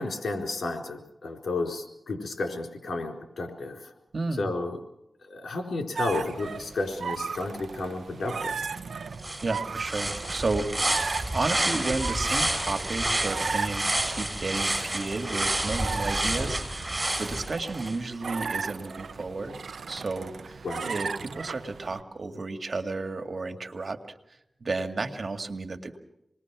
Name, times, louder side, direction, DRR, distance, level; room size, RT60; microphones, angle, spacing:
voice 1, 0.0-3.9 4.4-4.8 5.3-8.6 20.6-20.9, left 2 dB, 80° left, 2 dB, 4.2 m, -32 dB
voice 2, 4.1-4.5 9.4-19.6 19.9-26.0, right 3 dB, 60° right, 6 dB, 2.1 m, -33 dB
sound 1, 6.0-22.0, right 5 dB, 85° right, 0.8 m, -36 dB
sound 2, 8.8-8.9 9.2-18.0, right 1 dB, 25° right, 7.7 m, -29 dB
27.5 x 20.5 x 6.1 m, 0.81 s
cardioid pair, 50°, 0 cm